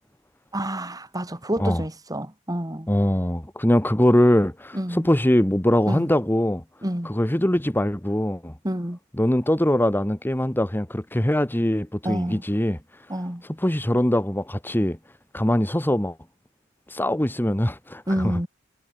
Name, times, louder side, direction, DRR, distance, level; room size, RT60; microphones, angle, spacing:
voice 1, 0.5-2.9 4.7-5.1 5.9-6.1 6.8-7.1 8.6-9.0 12.0-12.4 13.1-13.4 18.1-18.5, right 1 dB, 15° right, 3.5 m, -28 dB
voice 2, 2.9-6.6 7.0-8.5 9.2-12.8 13.5-15.0 15.3-16.1 16.9-18.3, left 1 dB, 10° left, 1.2 m, -22 dB
head